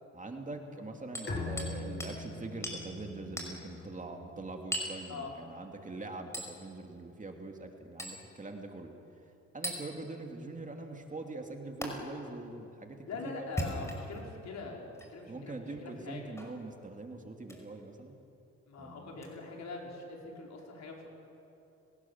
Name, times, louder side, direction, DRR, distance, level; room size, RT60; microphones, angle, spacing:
voice 1, 0.1-13.9 15.3-18.2 18.8-19.2, right 2 dB, 25° right, 3 dB, 2.7 m, -43 dB
Hammer, 1.1-1.7 2.0-2.2 2.6-2.8 3.4-3.6 4.7-5.0 6.3-6.5 8.0-8.2 9.6-9.8 11.8-11.9 13.4-14.2 14.9-15.1 16.4-16.6 17.4-17.6 19.2-19.3, equal, 10° left, 5.3 m, -37 dB
Bowed string instrument, 1.3-4.7, left 2 dB, 35° left, 5.5 m, -42 dB
voice 2, 13.1-15.6 15.8-16.2 18.7-21.1, left 3 dB, 65° left, 0 dB, 5.2 m, -42 dB
29.5 x 18.5 x 7.4 m, 2.8 s
cardioid pair, 90°, 30 cm